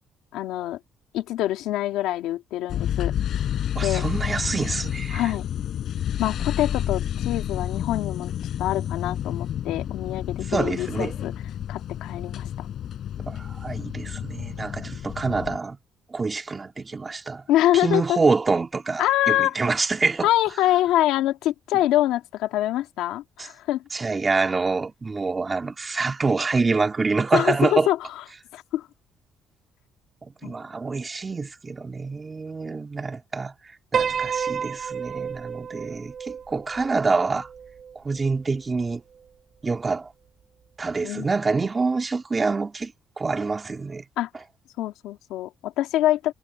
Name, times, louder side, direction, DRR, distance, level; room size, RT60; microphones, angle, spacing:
voice 1, 0.3-0.8 1.1-3.1 3.8-4.1 5.1-5.5 6.2-8.3 8.6-11.3 11.7-12.7 17.5-18.2 19.0-19.6 20.2-23.8 27.3-28.0 28.5-28.9 30.4-30.5 41.0-41.3 44.2-44.3 44.8-46.3, left 14 dB, 90° left, 1.8 m, -25 dB
sound 1, 2.7-15.6, left 10 dB, 60° left, 7.1 m, -30 dB
voice 2, 3.7-5.3 10.5-11.2 13.3-15.8 16.1-17.4 17.7-20.3 23.4-23.5 23.9-27.9 30.2-33.5 33.9-37.5 37.9-39.0 39.6-40.1 40.8-44.0, right 4 dB, 25° right, 3.0 m, -26 dB
Piano, 33.9-38.3, right 7 dB, 50° right, 1.0 m, -30 dB
cardioid pair, 110°, 0 cm